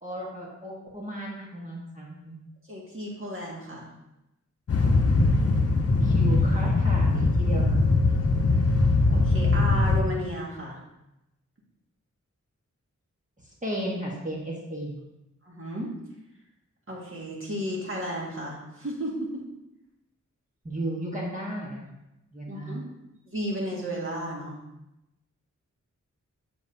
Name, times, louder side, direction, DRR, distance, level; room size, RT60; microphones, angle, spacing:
voice 1, 0.0-2.4 6.0-7.8 8.1-8.2 13.6-15.0 20.6-21.9 22.3-22.8, right 1 dB, 25° right, -4 dB, 1.4 m, -34 dB
voice 2, 2.7-3.9 9.1-10.8 15.5-15.9 16.9-19.2 22.5-22.8 23.3-24.6, equal, 45° right, -4 dB, 2.0 m, -33 dB
sound 1, 4.7-10.0, left 3 dB, 50° left, 0.8 m, -21 dB
7.5 x 6.8 x 2.8 m, 0.92 s
wide cardioid pair, 110°, 30 cm